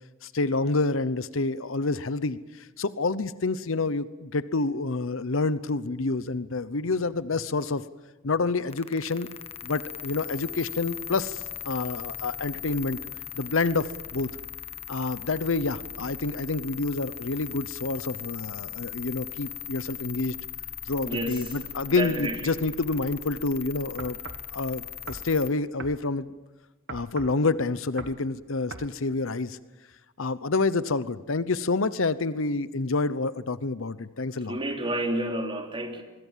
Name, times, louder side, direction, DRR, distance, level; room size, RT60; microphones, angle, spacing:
voice 1, 0.2-7.8 8.2-9.3 9.6-13.0 13.3-14.3 14.9-20.3 20.9-24.2 24.5-26.3 26.9-29.6 30.2-34.6, left 3 dB, 70° left, 15 dB, 0.9 m, -28 dB
sound 1, 8.7-25.5, left 10 dB, 30° left, 1.2 m, -39 dB
voice 2, 21.0-21.4 22.0-22.4 34.5-36.0, right 1 dB, 25° right, 3 dB, 3.4 m, -30 dB
sound 2, 24.0-24.5 25.1-25.3 25.8-26.0 26.9-27.4 28.0-28.2 28.7-28.9, right 4 dB, 60° right, 1.3 m, -40 dB
25.0 x 22.0 x 7.4 m, 1.1 s
head